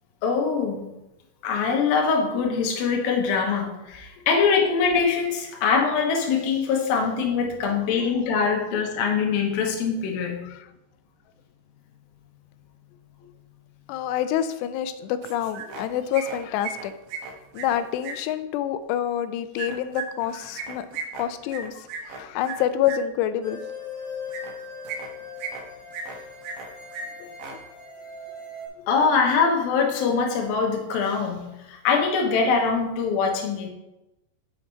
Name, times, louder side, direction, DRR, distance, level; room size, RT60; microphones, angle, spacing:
voice 1, 0.2-0.9 1.4-10.4 28.9-33.7, left 5 dB, 70° left, 1 dB, 2.6 m, -23 dB
voice 2, 13.9-16.9 17.5-20.9 21.2-23.6 27.2-27.3, left 10 dB, 90° left, 12 dB, 2.7 m, -27 dB
sound 1, 15.2-15.9 16.1-18.1 19.5-23.0 24.3-24.5 24.8-25.6 25.9-26.7 26.9-27.0 27.3-27.5, right 5 dB, 80° right, 1.9 m, -35 dB
sound 2, 23.4-28.7, left 4 dB, 30° left, 2.9 m, -39 dB
6.4 x 5.9 x 4.5 m, 0.92 s
omnidirectional pair, 4.8 m